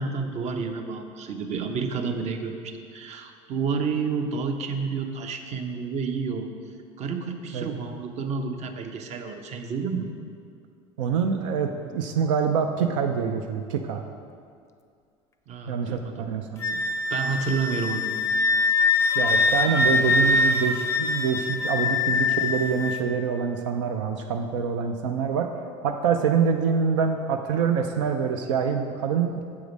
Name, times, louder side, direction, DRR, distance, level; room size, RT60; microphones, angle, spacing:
voice 1, 0.0-6.5 7.0-10.1 15.5-16.3 16.5-16.8 17.1-18.2, right 5 dB, 50° right, 6 dB, 0.7 m, -30 dB
voice 2, 11.0-14.0 15.7-16.6 19.2-25.5 25.8-29.4, right 6 dB, 85° right, 5 dB, 0.5 m, -25 dB
Wind instrument woodwind instrument, 16.6-23.0, left 3 dB, 20° left, 0.5 m, -23 dB
7.1 x 4.8 x 5.2 m, 2.3 s
supercardioid pair, 90°, 15 cm